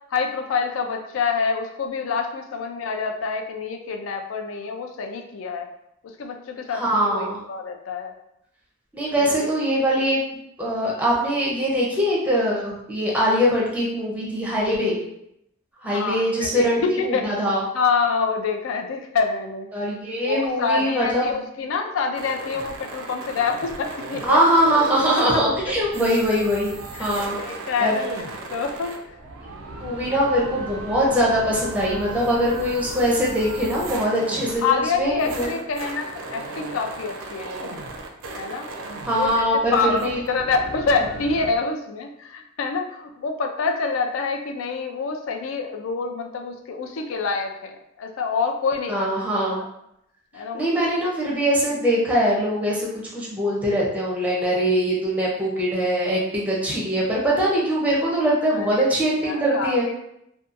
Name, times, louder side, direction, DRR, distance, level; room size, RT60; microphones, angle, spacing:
voice 1, 0.1-5.7 6.2-8.1 9.2-9.5 10.7-10.9 15.8-17.3 17.7-19.7 20.2-24.4 26.9-29.0 29.8-30.0 34.6-37.9 38.4-38.7 39.0-49.1 49.4-49.7 50.3-50.7 51.0-51.4 58.5-59.9, left 4 dB, 75° left, 5 dB, 0.4 m, -27 dB
voice 2, 6.7-7.4 8.9-10.2 10.6-15.0 15.8-16.8 17.1-17.6 19.7-21.4 24.2-26.7 27.0-27.4 27.8-27.9 29.8-35.5 39.1-39.7 40.0-40.2 48.9-49.6 50.5-52.9 53.1-59.9, equal, 5° right, -5 dB, 0.5 m, -22 dB
sound 1, 22.1-41.6, right 2 dB, 80° right, 0.4 m, -36 dB
2.7 x 2.2 x 2.4 m, 0.79 s
head